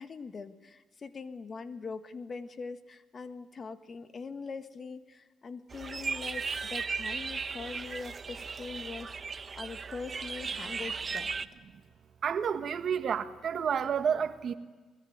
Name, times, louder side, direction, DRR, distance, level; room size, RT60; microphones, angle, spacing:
voice 1, 0.0-9.1 9.5-11.3, left 4 dB, 40° left, 10 dB, 1.6 m, -42 dB
sound 1, 5.7-11.5, right 5 dB, 35° right, 0.9 m, -36 dB
voice 2, 12.2-14.6, right 7 dB, 55° right, 10 dB, 1.5 m, -30 dB
21.5 x 21.0 x 9.4 m, 1.3 s
cardioid pair, 90°, 0 cm